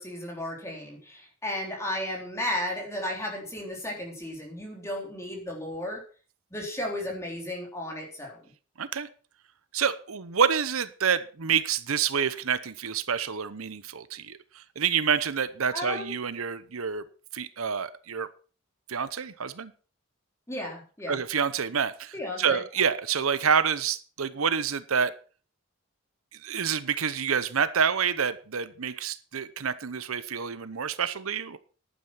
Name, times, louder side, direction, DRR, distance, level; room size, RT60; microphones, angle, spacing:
voice 1, 0.0-6.0 6.5-8.4 15.7-16.1 20.5-21.2 22.1-22.6, left 1 dB, 15° left, 0 dB, 3.7 m, -34 dB
voice 2, 8.8-9.1 9.7-17.0 17.3-18.3 18.9-19.7 21.1-25.1 26.3-31.6, right 7 dB, 80° right, 14 dB, 0.8 m, -28 dB
11.0 x 9.2 x 5.7 m, 0.38 s
head